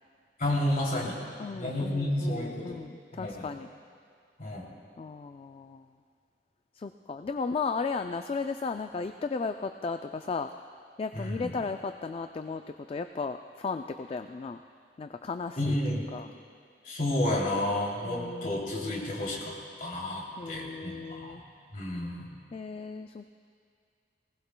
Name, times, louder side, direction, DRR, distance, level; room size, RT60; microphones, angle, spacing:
voice 1, 0.4-1.2 1.5-2.8 3.1-3.5 4.4-4.6 11.1-11.5 15.6-16.1 16.8-21.4 21.7-22.3, left 1 dB, 50° left, -3 dB, 2.9 m, -31 dB
voice 2, 1.4-3.7 5.0-5.8 6.8-10.5 11.0-12.6 12.9-14.6 15.0-15.8 16.1-16.3 18.0-19.1 20.4-21.4 22.5-23.3, left 4 dB, 35° left, 7 dB, 0.3 m, -35 dB
20.0 x 18.5 x 2.2 m, 2.3 s
head